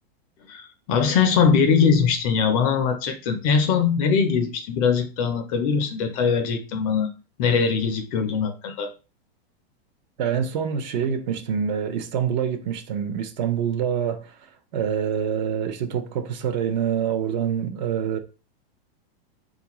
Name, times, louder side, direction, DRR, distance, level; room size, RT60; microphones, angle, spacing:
voice 1, 0.5-7.1 7.4-8.9, left 6 dB, 35° left, 0.5 m, -21 dB
voice 2, 10.2-18.2, right 8 dB, 45° right, 0.6 m, -26 dB
3.8 x 2.4 x 2.9 m
supercardioid pair, 155°, 31 cm